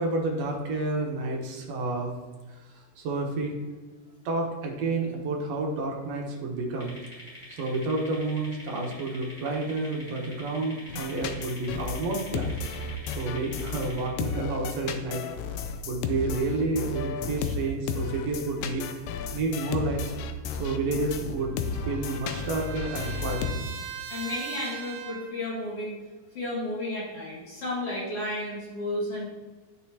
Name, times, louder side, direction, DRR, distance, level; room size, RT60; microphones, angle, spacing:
voice 1, 0.0-2.1 2.5-3.6 4.3-6.9 7.5-12.5 13.2-15.2 15.8-20.0 20.6-21.6 21.9-23.6, right 2 dB, 60° right, 0 dB, 2.1 m, -30 dB
sound 1, 6.8-14.1, left 1 dB, 25° left, 1.9 m, -46 dB
sound 2, 10.9-23.5, left 5 dB, 90° left, 2.3 m, -33 dB
Trumpet, 21.0-25.4, right 8 dB, 85° right, 2.3 m, -40 dB
voice 2, 24.1-26.0 26.3-29.2, left 1 dB, 50° left, -5 dB, 2.4 m, -32 dB
10.0 x 6.4 x 2.8 m, 1.3 s
omnidirectional pair, 3.8 m